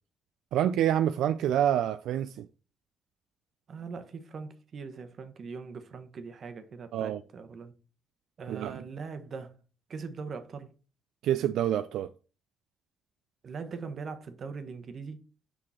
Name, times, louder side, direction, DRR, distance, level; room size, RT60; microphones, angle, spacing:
voice 1, 0.5-2.5 6.9-7.2 8.5-8.7 11.2-12.1, right 11 dB, 85° right, 0.3 m, -27 dB
voice 2, 3.7-7.7 8.4-9.6 9.9-10.7 13.4-15.3, right 5 dB, 50° right, 1.1 m, -41 dB
6.2 x 4.8 x 4.2 m
cardioid pair, 90°, 0 cm